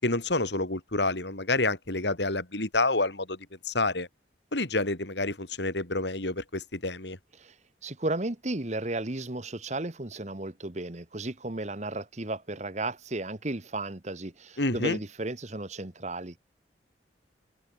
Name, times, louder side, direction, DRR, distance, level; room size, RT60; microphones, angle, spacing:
voice 1, 0.0-4.1 4.5-7.2 14.6-15.0, left 2 dB, 70° left, 3.6 m, -28 dB
voice 2, 7.8-16.4, right 2 dB, 40° right, 1.4 m, -34 dB
head